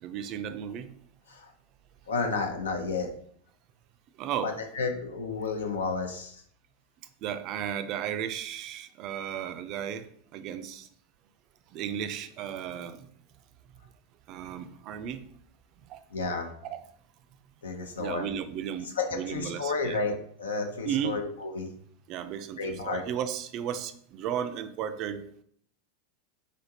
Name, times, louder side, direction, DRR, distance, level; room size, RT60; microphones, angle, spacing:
voice 1, 0.0-0.9 4.2-4.6 7.2-10.1 10.3-10.9 11.7-13.1 14.3-15.3 15.9-16.0 16.6-16.8 18.0-20.0 20.8-21.2 22.1-25.3, right 9 dB, 50° right, 10 dB, 0.3 m, -34 dB
voice 2, 2.1-3.1 4.4-6.4 16.1-16.5 17.6-18.3 18.8-21.7 22.6-23.0, left 4 dB, 85° left, 4 dB, 0.6 m, -31 dB
3.7 x 3.4 x 2.7 m, 0.62 s
hypercardioid pair, 95°, 0 cm